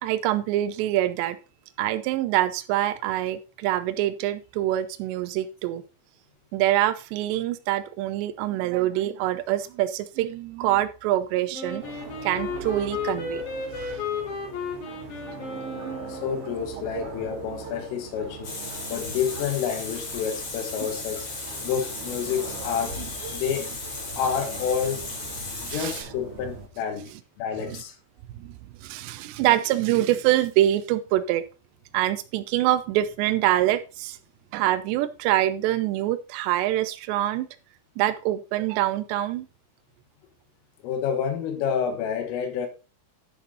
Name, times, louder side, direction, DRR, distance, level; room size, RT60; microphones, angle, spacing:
voice 1, 0.0-1.4 1.8-5.8 6.5-13.4 13.7-14.1 15.7-16.1 17.0-17.1 20.8-20.9 23.0-23.1 25.7-25.9 27.6-27.8 28.4-31.4 31.9-34.2 34.5-37.5 38.0-39.5, right 14 dB, 75° right, 2.7 m, -25 dB
Wind instrument woodwind instrument, 11.5-16.6, left 5 dB, 65° left, 5.0 m, -34 dB
sound 1, 11.8-26.7, right 4 dB, 45° right, 2.0 m, -41 dB
voice 2, 16.1-18.5 18.9-21.3 21.6-23.7 24.2-25.1 25.6-27.1 27.4-27.9 40.8-42.7, left 7 dB, 85° left, 4.2 m, -29 dB
Water tap faucet, 18.4-26.0, left 3 dB, 40° left, 2.8 m, -36 dB
10.5 x 6.5 x 4.2 m
omnidirectional pair, 5.7 m